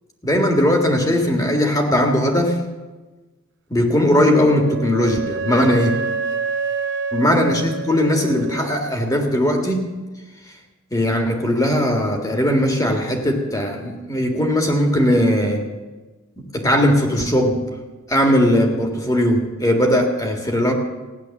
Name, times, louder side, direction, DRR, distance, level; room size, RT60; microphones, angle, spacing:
voice 1, 0.2-2.6 3.7-6.0 7.1-10.0 10.9-15.7 16.4-17.7 18.1-20.7, equal, 15° left, 3 dB, 1.8 m, -19 dB
Wind instrument woodwind instrument, 4.3-9.0, right 5 dB, 60° right, 0.8 m, -27 dB
15.5 x 10.0 x 7.2 m, 1.2 s
head